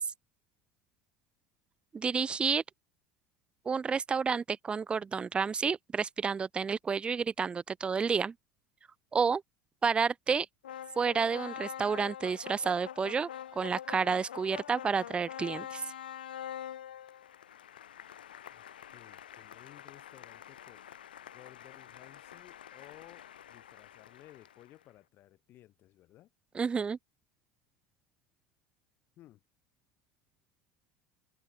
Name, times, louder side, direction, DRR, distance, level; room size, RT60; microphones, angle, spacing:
voice 1, 1.9-2.6 3.7-8.3 9.1-9.4 9.8-10.5 11.0-13.3 13.6-15.8 26.5-27.0, right 5 dB, 20° right, 0.3 m, -30 dB
sound 1, 10.6-24.8, left 10 dB, 85° left, 0.5 m, -46 dB
voice 2, 18.9-20.9 21.3-26.3 29.2-29.4, left 14 dB, 50° left, 5.5 m, -57 dB
hypercardioid pair, 75°, 5 cm